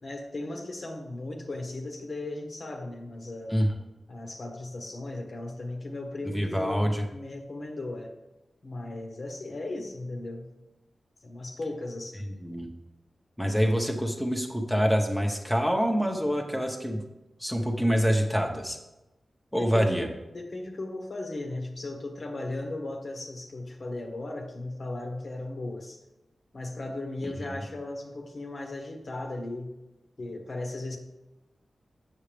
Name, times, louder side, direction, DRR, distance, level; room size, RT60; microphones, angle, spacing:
voice 1, 0.0-3.5 4.1-8.1 8.6-10.5 11.2-12.2 19.5-20.0 20.3-26.0 26.5-29.7 30.2-31.0, left 2 dB, 60° left, 2 dB, 1.2 m, -36 dB
voice 2, 6.3-7.0 12.4-12.7 13.4-17.0 17.4-18.8 19.5-20.1 27.2-27.6, equal, ahead, 2 dB, 1.0 m, -26 dB
7.5 x 6.4 x 3.4 m, 0.98 s
cardioid pair, 65°, 0 cm